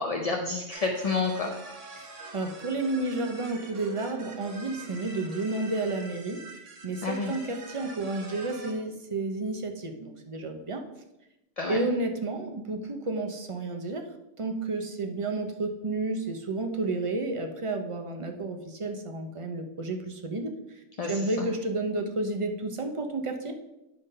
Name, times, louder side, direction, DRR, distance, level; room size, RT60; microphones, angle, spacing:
voice 1, 0.0-2.0 7.0-7.3 11.6-11.8 21.0-21.5, left 4 dB, 40° left, 1 dB, 0.5 m, -30 dB
sound 1, 0.7-8.7, right 3 dB, 60° right, 1.5 m, -44 dB
voice 2, 2.0-6.4 6.8-10.8 11.7-14.0 14.4-20.5 21.0-23.5, right 2 dB, 30° right, 5 dB, 0.7 m, -31 dB
10.0 x 3.9 x 5.4 m, 0.91 s
omnidirectional pair, 1.4 m